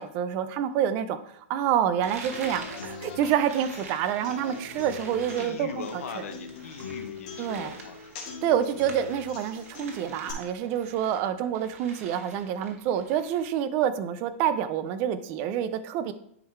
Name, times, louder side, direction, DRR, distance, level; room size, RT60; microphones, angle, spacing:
voice 1, 0.0-5.8 6.2-6.3 7.4-7.7 8.4-16.1, right 9 dB, 25° right, 12 dB, 0.4 m, -27 dB
sound 1, 2.0-11.3 11.5-13.5, right 4 dB, 80° right, 1.7 m, -46 dB
Human voice / Acoustic guitar, 2.3-10.3, left 4 dB, 35° left, 1.9 m, -42 dB
voice 2, 5.4-8.1, left 6 dB, 70° left, 7 dB, 0.9 m, -40 dB
10.5 x 3.7 x 4.5 m, 0.69 s
supercardioid pair, 175°, 8 cm